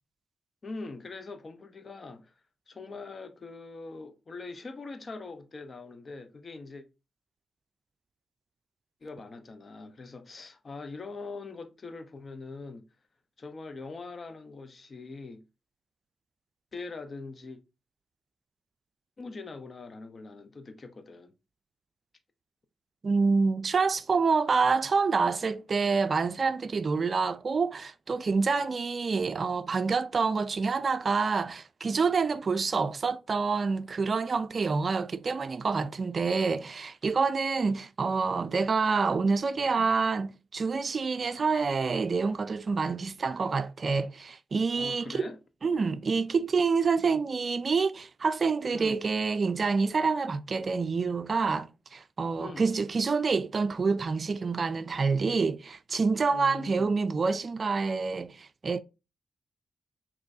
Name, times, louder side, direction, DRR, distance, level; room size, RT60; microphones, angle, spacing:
voice 1, 0.6-2.3 2.7-6.8 9.0-12.9 13.4-15.4 16.7-17.6 19.2-21.3 44.8-45.4 48.7-49.0 52.4-52.7 56.3-56.9, left 3 dB, 50° left, 0.9 m, -42 dB
voice 2, 23.0-45.3 45.6-58.8, right 4 dB, 55° right, 0.4 m, -27 dB
6.0 x 3.0 x 2.7 m
cardioid pair, 55°, 0 cm